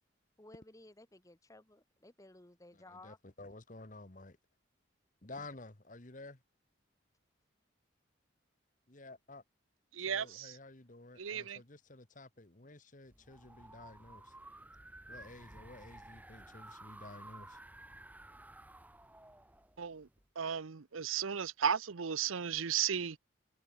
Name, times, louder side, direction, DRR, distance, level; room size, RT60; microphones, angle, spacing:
voice 1, 0.4-3.2 5.4-5.5 10.2-10.3, left 2 dB, 15° left, 1.0 m, -57 dB
voice 2, 2.9-4.4 5.2-6.4 8.9-9.4 10.1-14.3 15.1-17.6, left 2 dB, 40° left, 1.6 m, -52 dB
voice 3, 9.9-10.6 11.2-11.6 19.8-20.1 20.4-23.2, right 8 dB, 90° right, 0.7 m, -35 dB
sound 1, 13.1-20.2, right 1 dB, 10° right, 2.1 m, -54 dB
head